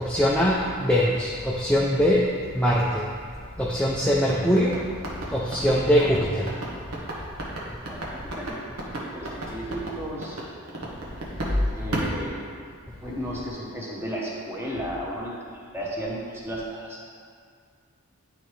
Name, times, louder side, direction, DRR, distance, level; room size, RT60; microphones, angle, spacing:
voice 1, 0.0-2.3 2.5-3.0 3.6-4.8 5.3-6.5, equal, 5° left, -5 dB, 0.4 m, -22 dB
sound 1, 4.3-11.6 11.9-13.0, right 1 dB, 85° right, 1.3 m, -33 dB
voice 2, 7.9-8.6 9.1-10.4 11.7-12.4 13.0-17.1, equal, 10° right, -4 dB, 1.0 m, -34 dB
10.5 x 4.0 x 3.2 m, 2.1 s
head